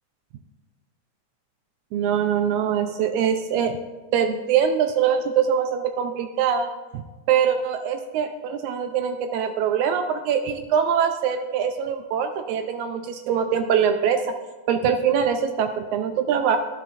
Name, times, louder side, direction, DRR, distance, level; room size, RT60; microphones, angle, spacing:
voice 1, 1.9-3.8 4.1-14.2 14.7-16.6, right 8 dB, 80° right, 7 dB, 1.9 m, -23 dB
13.0 x 9.9 x 2.5 m, 1.2 s
omnidirectional pair, 3.5 m